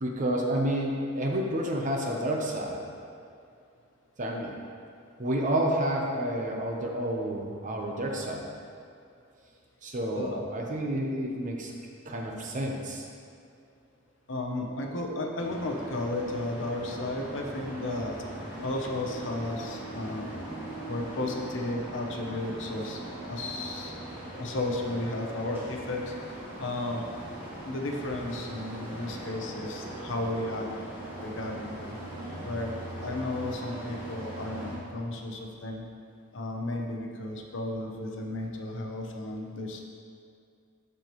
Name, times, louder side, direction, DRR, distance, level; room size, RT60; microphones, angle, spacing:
voice 1, 0.0-2.8 4.2-4.5 5.2-8.5 9.8-11.7 12.0-13.1, right 1 dB, 35° right, 0 dB, 0.8 m, -30 dB
voice 2, 14.3-18.2 18.6-20.3 20.9-23.0 23.3-23.9 24.4-26.1 26.6-27.0 27.7-30.7 31.2-32.0 32.4-35.8 36.3-39.8, left 2 dB, 60° left, 1 dB, 0.8 m, -33 dB
sound 1, 15.4-34.8, right 1 dB, 10° right, 1.6 m, -40 dB
12.0 x 4.6 x 3.1 m, 2.4 s
head